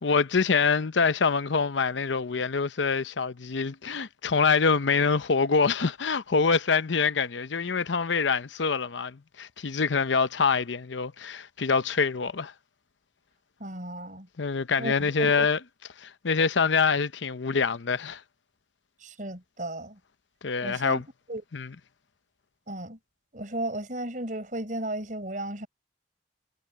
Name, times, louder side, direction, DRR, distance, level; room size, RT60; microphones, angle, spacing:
voice 1, 0.0-12.5 14.4-15.6 16.0-18.2 20.4-21.0 21.5-21.7, left 5 dB, 90° left, 0.7 m, -25 dB
voice 2, 13.6-14.3 14.8-15.5 19.0-20.0 20.6-21.0 21.3-21.4 22.7-23.0 23.3-25.7, right 1 dB, 45° right, 5.5 m, -34 dB
head